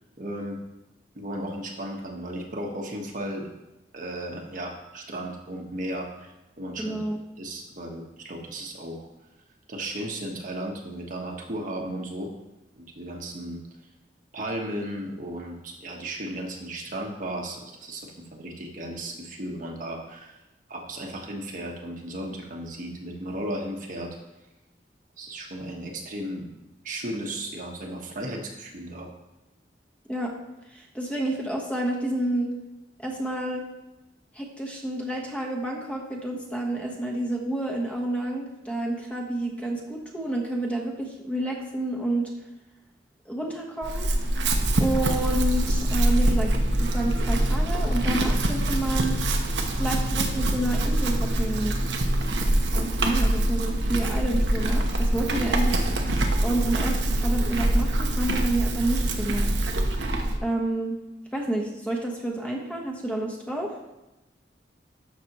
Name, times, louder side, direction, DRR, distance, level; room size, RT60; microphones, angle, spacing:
voice 1, 0.2-0.6 1.1-3.5 3.9-6.3 6.6-7.0 7.4-9.1 9.7-12.3 12.8-13.6 14.3-20.4 20.7-24.2 25.2-26.5 26.8-29.1, right 1 dB, 50° right, 1 dB, 1.3 m, -35 dB
voice 2, 6.8-7.2 30.1-30.3 30.7-32.5 33.0-33.6 34.3-42.3 43.2-44.1 44.8-46.5 46.8-49.2 49.8-51.8 52.7-55.8 56.4-59.6 60.4-61.0 61.3-63.7, right 1 dB, 10° left, -1 dB, 1.1 m, -29 dB
Chewing mastication / Livestock farm animals working animals, 43.8-60.4, right 1 dB, 80° right, 0.9 m, -24 dB
12.5 x 6.0 x 3.0 m, 0.98 s
head